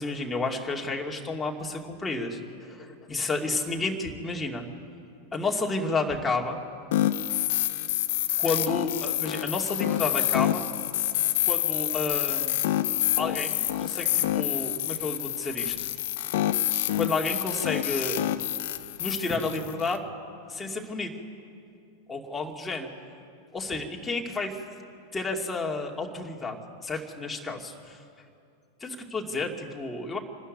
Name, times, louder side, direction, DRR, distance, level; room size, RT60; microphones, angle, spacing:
voice 1, 0.0-4.6 5.3-6.6 8.4-10.6 11.4-12.6 13.2-15.9 16.9-18.2 19.0-20.1 20.5-21.1 22.1-22.9 23.5-24.6 25.1-26.6 26.8-28.0 28.8-30.2, left 3 dB, 10° left, 0 dB, 2.5 m, -31 dB
sound 1, 6.9-20.0, left 13 dB, 55° left, 0.8 m, -27 dB
26.0 x 12.5 x 9.4 m, 2.4 s
figure-of-eight pair, 90°, 0 cm